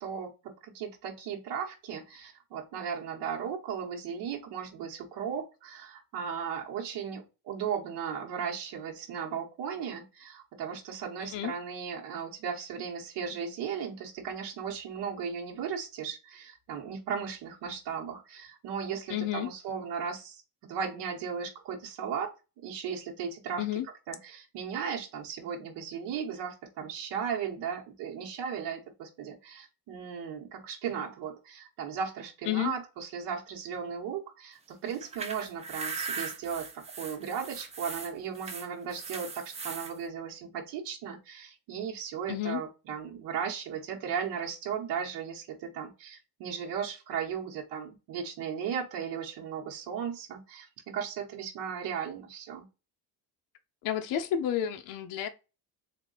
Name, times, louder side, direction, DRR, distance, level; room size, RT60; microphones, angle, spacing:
voice 1, 0.0-22.3 22.6-23.8 24.1-52.7, right 7 dB, 90° right, 1.3 m, -36 dB
voice 2, 11.2-11.5 19.1-19.5 23.6-23.9 32.5-32.7 42.3-42.6 53.8-55.3, left 11 dB, 55° left, 0.6 m, -31 dB
sound 1, 34.9-39.9, right 4 dB, 15° right, 0.4 m, -39 dB
3.7 x 2.6 x 4.0 m
cardioid pair, 175°, 41 cm